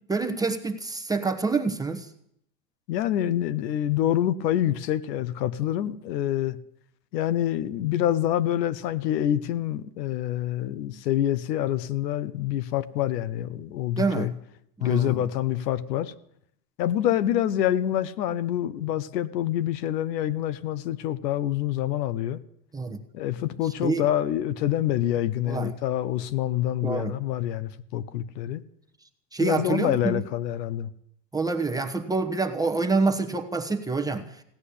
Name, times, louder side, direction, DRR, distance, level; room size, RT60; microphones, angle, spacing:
voice 1, 0.1-2.1 14.0-14.3 14.8-15.3 22.7-23.0 23.8-24.0 25.5-25.7 26.8-27.1 29.3-30.2 31.3-34.4, right 4 dB, 5° right, 1.0 m, -27 dB
voice 2, 2.9-6.6 7.1-14.3 14.8-16.1 16.8-22.4 23.1-28.6 29.4-30.9, left 12 dB, 75° left, 1.1 m, -26 dB
16.5 x 9.8 x 8.5 m
supercardioid pair, 130°, 50 cm